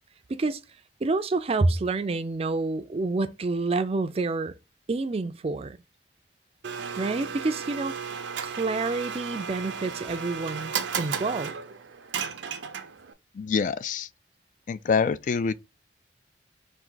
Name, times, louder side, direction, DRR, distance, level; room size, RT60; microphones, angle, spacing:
voice 1, 0.3-0.6 1.0-4.5 4.9-5.8 7.0-11.5, right 3 dB, 35° right, 0.4 m, -28 dB
Domestic sounds home sounds, 6.6-13.1, right 6 dB, 90° right, 0.6 m, -34 dB
voice 2, 13.3-14.1 14.7-15.5, left 5 dB, 45° left, 0.3 m, -25 dB
4.6 x 2.7 x 3.8 m
head